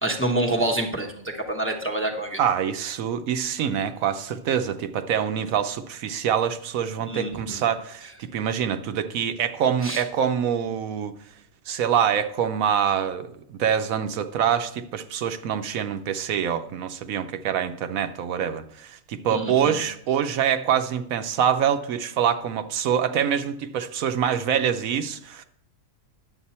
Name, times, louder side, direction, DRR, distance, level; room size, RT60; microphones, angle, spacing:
voice 1, 0.0-2.4 7.1-7.6 9.8-10.0 19.3-19.8, right 1 dB, 10° left, 1 dB, 0.8 m, -27 dB
voice 2, 2.4-11.1 11.7-25.4, right 8 dB, 75° right, 9 dB, 1.0 m, -25 dB
10.0 x 7.3 x 4.2 m, 0.65 s
omnidirectional pair, 1.5 m